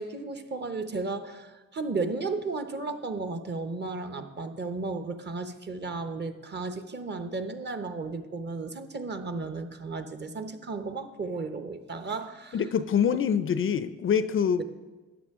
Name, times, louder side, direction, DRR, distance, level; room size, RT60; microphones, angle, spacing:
voice 1, 0.0-12.6, right 3 dB, 35° right, 8 dB, 0.9 m, -34 dB
voice 2, 12.5-14.6, left 7 dB, 45° left, 13 dB, 0.5 m, -25 dB
13.0 x 9.6 x 3.7 m, 1.2 s
cardioid pair, 90°, 30 cm